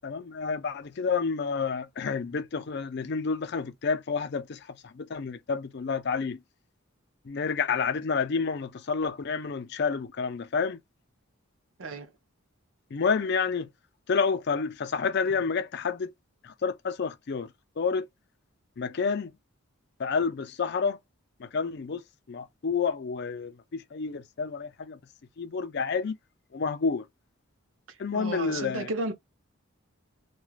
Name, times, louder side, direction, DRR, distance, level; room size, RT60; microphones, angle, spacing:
voice 1, 0.0-6.4 7.2-10.8 12.9-13.7 14.1-16.1 16.4-17.5 17.8-18.1 18.8-19.3 20.0-21.0 21.4-25.0 25.4-26.2 26.5-27.0 28.0-28.9, left 5 dB, 50° left, 0.4 m, -29 dB
voice 2, 11.8-12.1 27.9-29.1, right 2 dB, 65° right, 0.7 m, -33 dB
3.1 x 2.3 x 2.3 m
head